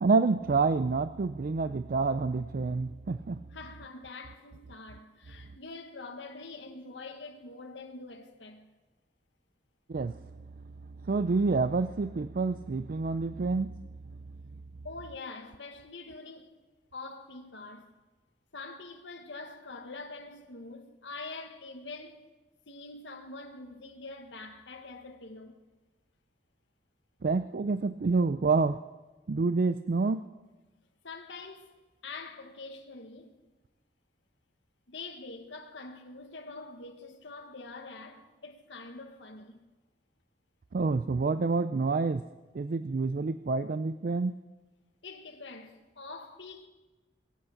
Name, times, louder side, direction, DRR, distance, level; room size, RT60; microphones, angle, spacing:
voice 1, 0.0-3.4 9.9-10.2 11.0-13.8 27.2-28.8 29.3-30.2 40.7-42.2 42.5-44.3, right 4 dB, 50° right, 0.4 m, -28 dB
voice 2, 3.5-8.7 14.8-16.5 16.9-17.9 18.5-22.3 22.7-25.6 31.0-33.4 34.9-39.6 45.0-46.7, left 3 dB, 75° left, 1.6 m, -45 dB
22.5 x 8.4 x 6.6 m
head